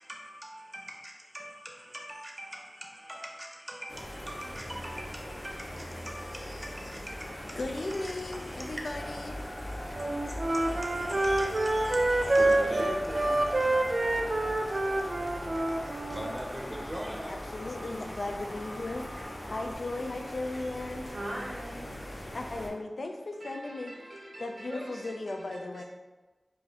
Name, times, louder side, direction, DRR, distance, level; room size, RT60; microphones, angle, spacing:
voice 1, 0.0-9.1 10.0-10.1 10.5-13.7 14.4-15.1 15.4-17.3 20.5-20.7 22.2-22.4, right 1 dB, 15° right, -1 dB, 0.6 m, -42 dB
sound 1, 3.9-22.7, left 1 dB, 65° left, 0.9 m, -42 dB
voice 2, 7.6-9.4 17.3-19.2 19.5-21.1 22.3-23.9 24.4-25.8, left 2 dB, 80° left, 4 dB, 0.4 m, -36 dB
sound 2, 8.9-19.7, equal, 20° left, 0.9 m, -42 dB
Wind instrument woodwind instrument, 9.9-16.3, right 2 dB, 55° right, 0.3 m, -27 dB
voice 3, 21.1-21.9 23.4-25.8, right 1 dB, 90° right, -4 dB, 1.0 m, -42 dB
4.8 x 2.5 x 2.8 m, 1.2 s
wide cardioid pair, 60°, 0 cm